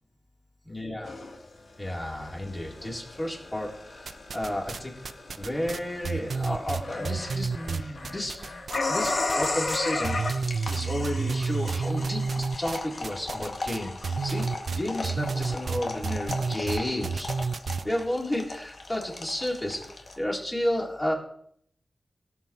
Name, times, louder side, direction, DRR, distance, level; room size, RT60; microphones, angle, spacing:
voice 1, 0.7-1.1 1.8-8.6 8.8-10.3 10.7-13.9 14.2-14.5 14.7-17.3 17.8-21.1, left 1 dB, 25° left, -2 dB, 3.9 m, -32 dB
sound 1, 1.0-20.2, left 3 dB, 75° left, 1.7 m, -35 dB
sound 2, 4.1-4.8 5.0-8.8 9.0-9.8 10.0-17.8, right 5 dB, 75° right, 0.6 m, -30 dB
17.0 x 7.1 x 4.6 m, 0.67 s
wide cardioid pair, 65°, 0 cm